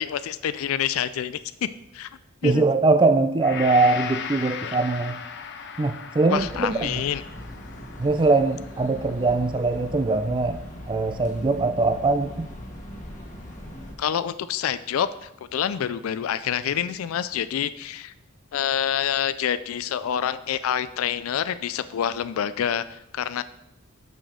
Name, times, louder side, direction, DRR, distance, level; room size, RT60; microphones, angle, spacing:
voice 1, 0.0-1.7 1.9-2.1 2.4-2.6 4.6-4.8 6.3-7.2 14.0-18.1 18.5-23.4, left 9 dB, 85° left, 14 dB, 0.4 m, -27 dB
voice 2, 2.4-5.2 5.8-7.0 8.0-12.5, right 3 dB, 25° right, 9 dB, 0.5 m, -22 dB
Gong, 3.4-11.7 12.2-12.3, left 7 dB, 55° left, 0.7 m, -38 dB
sound 1, 6.3-13.9, equal, 40° left, 1.3 m, -40 dB
6.6 x 6.2 x 5.0 m, 0.83 s
head